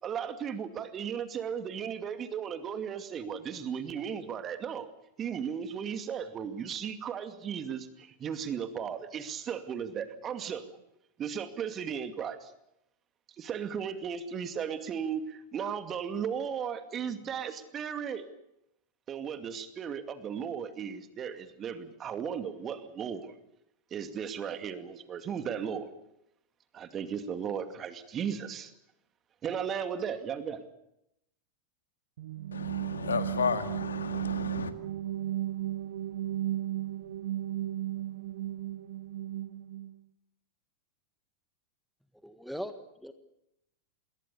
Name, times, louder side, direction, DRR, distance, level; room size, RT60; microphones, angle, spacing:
voice 1, 0.0-4.9 5.2-10.6 11.2-12.5 13.4-18.3 19.1-23.3 23.9-25.9 26.7-28.7 29.4-30.6, right 7 dB, 25° right, 2.4 m, -36 dB
sound 1, 32.2-40.0, right 13 dB, 55° right, 1.1 m, -35 dB
voice 2, 32.5-34.7, left 6 dB, 70° left, 2.0 m, -33 dB
voice 3, 42.2-43.1, equal, ahead, 1.6 m, -40 dB
27.0 x 22.0 x 6.9 m
figure-of-eight pair, 90°, 0 cm